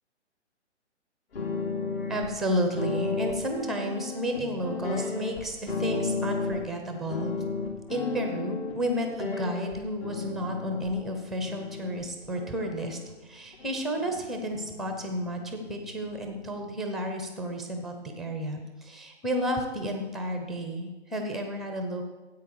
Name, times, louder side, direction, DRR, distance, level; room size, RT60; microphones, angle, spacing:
sound 1, 1.3-2.3 2.8-6.8 7.1-10.9 11.4-13.1 13.5-14.2 14.5-16.7, left 4 dB, 55° left, 2.9 m, -34 dB
voice 1, 2.1-7.3 7.9-22.0, equal, ahead, 4 dB, 0.7 m, -32 dB
14.0 x 8.6 x 4.7 m, 1.2 s
hypercardioid pair, 140°, 36 cm